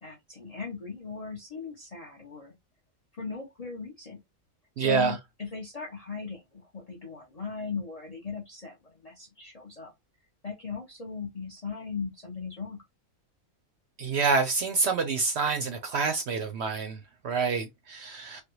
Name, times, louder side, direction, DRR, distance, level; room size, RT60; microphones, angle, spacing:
voice 1, 0.0-2.6 3.1-4.2 4.8-9.9 10.4-12.8, left 5 dB, 40° left, 0.5 m, -38 dB
voice 2, 4.8-5.2 14.0-18.4, right 5 dB, 65° right, 0.7 m, -27 dB
3.3 x 2.2 x 2.9 m
omnidirectional pair, 1.5 m